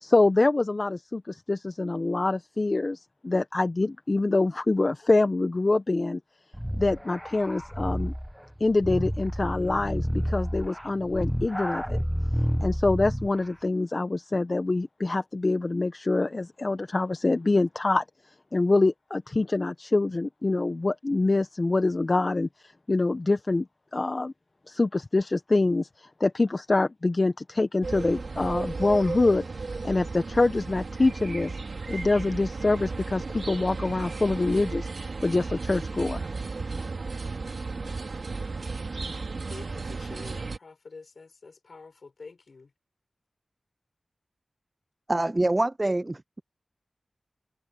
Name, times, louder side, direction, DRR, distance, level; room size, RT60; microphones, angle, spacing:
voice 1, 0.0-6.2 6.7-8.1 8.6-12.0 12.6-18.0 18.5-22.5 22.9-23.7 23.9-24.3 24.7-31.6 31.9-36.3, left 2 dB, 45° left, 0.9 m, -25 dB
sound 1, 6.5-13.4, equal, ahead, 0.9 m, -30 dB
sound 2, 27.8-40.6, right 3 dB, 75° right, 2.3 m, -34 dB
voice 2, 39.5-42.7, left 4 dB, 75° left, 6.4 m, -47 dB
voice 3, 45.1-46.4, right 1 dB, 30° right, 0.4 m, -25 dB
wide cardioid pair, 50°, 0 cm